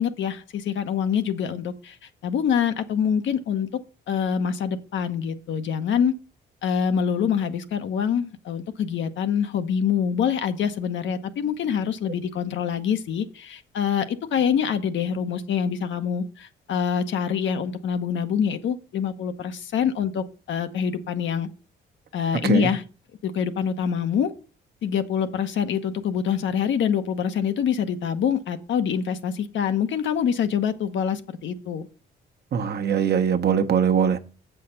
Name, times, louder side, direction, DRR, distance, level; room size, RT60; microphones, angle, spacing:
voice 1, 0.0-2.0 2.2-3.7 4.1-6.1 6.6-21.5 22.1-22.8 23.2-24.3 24.8-31.9, left 7 dB, 70° left, 9 dB, 1.0 m, -25 dB
voice 2, 32.5-34.2, right 7 dB, 55° right, 6 dB, 1.0 m, -21 dB
7.7 x 5.7 x 5.6 m, 0.35 s
cardioid pair, 90°, 20 cm